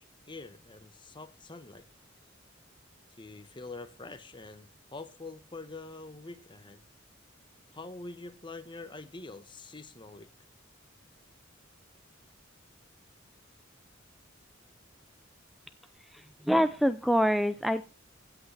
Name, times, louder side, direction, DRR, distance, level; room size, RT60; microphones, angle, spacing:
voice 1, 0.0-1.8 3.1-6.8 7.7-10.3, left 3 dB, 25° left, 1.2 m, -45 dB
voice 2, 16.1-17.8, equal, ahead, 0.5 m, -26 dB
16.5 x 8.2 x 3.4 m
head